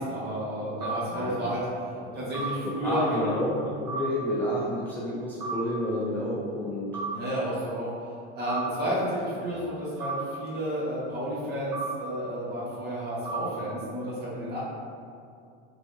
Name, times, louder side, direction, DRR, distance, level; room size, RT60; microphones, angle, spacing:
voice 1, 0.0-1.6 2.1-3.4 7.1-7.9 8.3-14.6, equal, 35° right, -8 dB, 1.4 m, -31 dB
sound 1, 0.8-1.0 2.3-2.5 3.9-4.0 5.4-5.6 6.9-7.1 8.5-8.6 10.0-10.2 11.7-11.9 13.3-13.4, right 6 dB, 60° right, 1.2 m, -32 dB
voice 2, 1.1-1.5 2.6-3.5 3.8-6.9 9.4-9.5, left 1 dB, 5° left, -7 dB, 0.4 m, -30 dB
4.1 x 2.7 x 2.7 m, 2.4 s
supercardioid pair, 115°, 30 cm